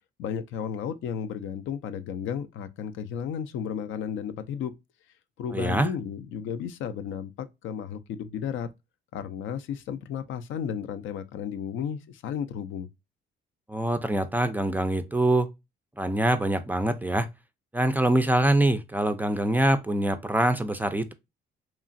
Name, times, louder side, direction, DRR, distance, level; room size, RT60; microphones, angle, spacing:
voice 1, 0.2-4.7 5.4-8.7 9.1-12.9, left 8 dB, 75° left, 0.4 m, -33 dB
voice 2, 5.5-5.9 13.7-15.5 16.0-17.3 17.7-21.1, right 1 dB, 10° right, 0.3 m, -24 dB
2.9 x 2.4 x 2.5 m
cardioid pair, 90°, 20 cm